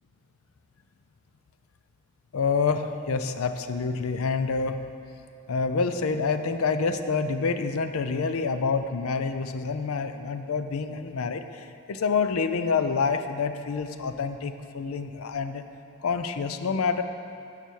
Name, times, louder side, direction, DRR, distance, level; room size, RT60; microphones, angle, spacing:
voice 1, 2.3-4.8 5.5-15.7 16.0-17.0, left 5 dB, 75° left, 9 dB, 0.5 m, -27 dB
11.5 x 5.6 x 4.6 m, 2.6 s
head